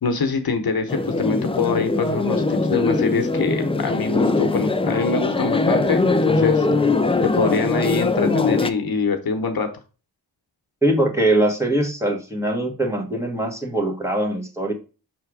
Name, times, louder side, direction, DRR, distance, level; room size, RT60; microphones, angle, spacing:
voice 1, 0.0-6.9 7.2-9.7, left 4 dB, 65° left, 6 dB, 0.9 m, -24 dB
sound 1, 0.9-8.7, left 3 dB, 15° left, 0.4 m, -21 dB
voice 2, 10.8-14.7, right 1 dB, 5° right, 0 dB, 1.3 m, -22 dB
6.0 x 3.3 x 4.7 m, 0.34 s
wide cardioid pair, 100°, 40 cm